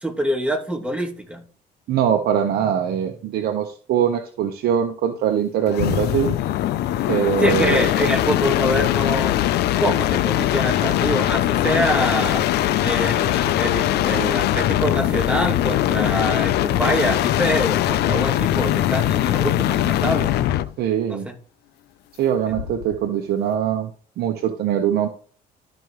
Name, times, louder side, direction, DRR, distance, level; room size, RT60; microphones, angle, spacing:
voice 1, 0.0-1.4 7.4-9.4 9.8-12.5 12.8-20.5 21.1-21.3 22.5-22.6, equal, 5° right, 0 dB, 2.6 m, -25 dB
voice 2, 1.9-6.4 7.1-7.8 20.8-21.3 22.2-25.1, right 9 dB, 70° right, 5 dB, 1.2 m, -22 dB
sound 1, 5.7-20.7 22.5-23.0, left 13 dB, 75° left, 0.7 m, -21 dB
13.0 x 5.3 x 3.2 m, 0.43 s
cardioid pair, 110°, 17 cm